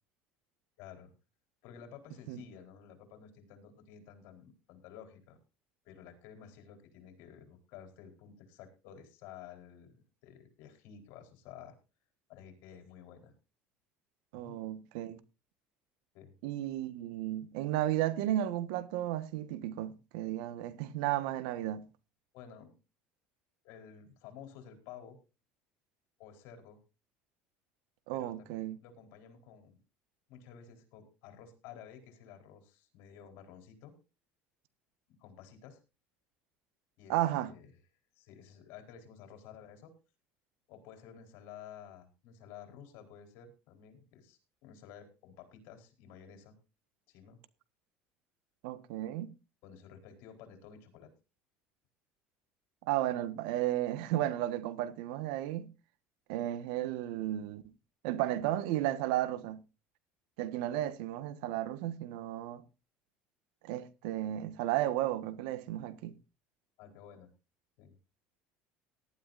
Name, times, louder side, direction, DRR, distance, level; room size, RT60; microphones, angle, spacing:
voice 1, 0.8-1.1 1.6-5.4 5.8-11.8 12.3-13.3 14.4-14.6 16.1-16.3 22.3-22.8 23.6-25.2 26.2-26.8 28.1-29.8 30.3-33.9 35.2-35.8 37.0-37.2 37.4-37.7 38.2-39.9 40.7-46.5 47.1-47.4 49.6-51.1 66.8-67.3 67.8-67.9, left 8 dB, 70° left, 4.4 m, -52 dB
voice 2, 14.3-15.2 16.4-21.9 28.1-28.8 37.1-37.5 48.6-49.3 52.9-55.7 56.3-57.6 58.0-59.6 60.4-62.6 63.6-66.1, right 13 dB, 90° right, 1.4 m, -33 dB
18.5 x 12.5 x 2.6 m
cardioid pair, 135°, 4 cm